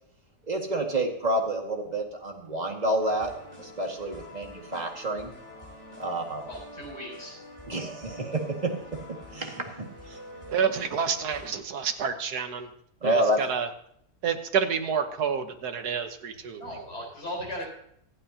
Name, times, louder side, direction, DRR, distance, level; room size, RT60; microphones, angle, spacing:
voice 1, 0.4-3.3 3.6-5.3 6.0-6.4 7.7-8.7 9.3-9.8 10.0-10.2 13.0-13.4, right 1 dB, 25° right, 1 dB, 2.0 m, -28 dB
sound 1, 3.0-11.5, left 1 dB, 30° left, 6.3 m, -46 dB
voice 2, 6.1-7.4 16.6-17.7, equal, 90° left, -2 dB, 5.1 m, -38 dB
voice 3, 10.5-12.7 13.0-13.7 14.2-16.6, right 6 dB, 75° right, 7 dB, 1.7 m, -28 dB
26.0 x 9.1 x 2.9 m, 0.69 s
omnidirectional pair, 1.7 m